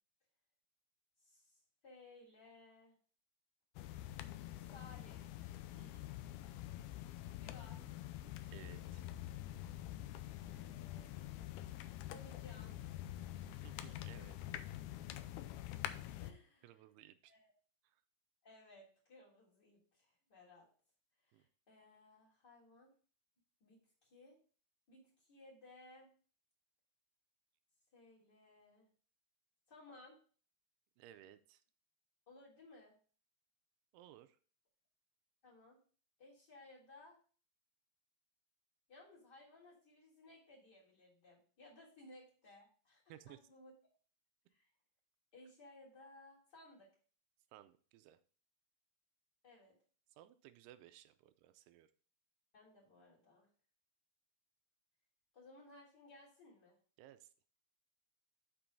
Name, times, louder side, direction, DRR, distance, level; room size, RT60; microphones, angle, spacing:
voice 1, 1.2-3.0 4.6-5.3 7.4-7.8 10.3-11.1 12.0-12.7 16.2-16.8 17.3-17.5 18.4-20.7 21.2-22.9 23.6-24.4 24.9-26.1 27.9-28.9 29.7-30.2 32.3-33.0 35.4-35.8 36.2-37.2 38.9-43.7 44.5-44.7 45.3-46.9 49.4-49.8 52.5-53.5 55.3-56.8, left 2 dB, 25° left, -5 dB, 3.4 m, -60 dB
sound 1, 3.8-16.3, left 13 dB, 80° left, 2.2 m, -46 dB
voice 2, 5.8-6.1 8.5-9.0 13.6-14.4 16.6-17.3 17.8-18.0 21.3-21.4 31.0-31.6 33.9-34.4 43.1-43.4 47.5-48.2 50.1-51.9 57.0-57.3, right 13 dB, 80° right, 10 dB, 2.5 m, -59 dB
6.9 x 5.9 x 5.2 m, 0.42 s
omnidirectional pair, 4.9 m